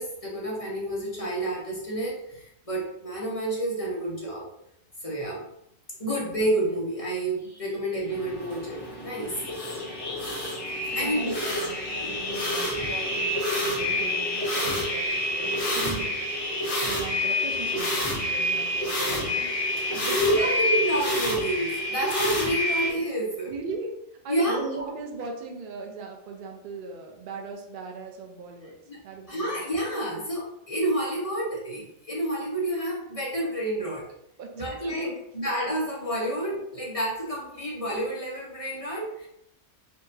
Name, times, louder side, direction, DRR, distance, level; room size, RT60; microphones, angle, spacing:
voice 1, 0.0-4.4 5.0-5.4 6.0-9.3 10.9-11.3 12.0-12.2 20.1-23.5 24.3-24.9 28.9-29.0 29.3-34.0 34.6-35.1 35.3-39.3, right 1 dB, 30° left, -5 dB, 0.9 m, -29 dB
sound 1, 8.1-22.9, left 1 dB, 60° left, 1.4 m, -28 dB
voice 2, 10.9-16.3 16.9-19.5 19.9-20.5 23.5-24.0 24.2-28.8 29.0-29.5 34.4-35.2, right 4 dB, 55° right, 2 dB, 0.6 m, -39 dB
4.4 x 2.5 x 2.6 m, 0.79 s
omnidirectional pair, 1.4 m